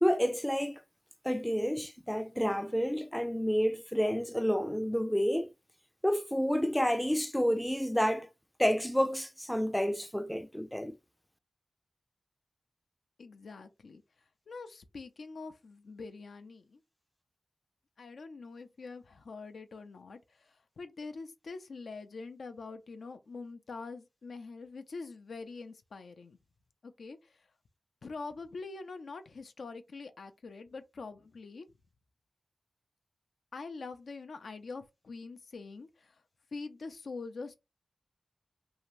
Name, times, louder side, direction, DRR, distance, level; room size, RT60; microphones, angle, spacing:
voice 1, 0.0-0.8 1.2-5.5 6.0-8.3 8.6-11.0, equal, 5° left, 0.3 m, -29 dB
voice 2, 13.2-14.0 14.5-16.8 18.0-26.4 26.8-27.4 28.0-31.7 33.5-36.2 36.5-37.5, left 4 dB, 90° left, 0.4 m, -44 dB
2.7 x 2.5 x 3.1 m
wide cardioid pair, 70°, 0 cm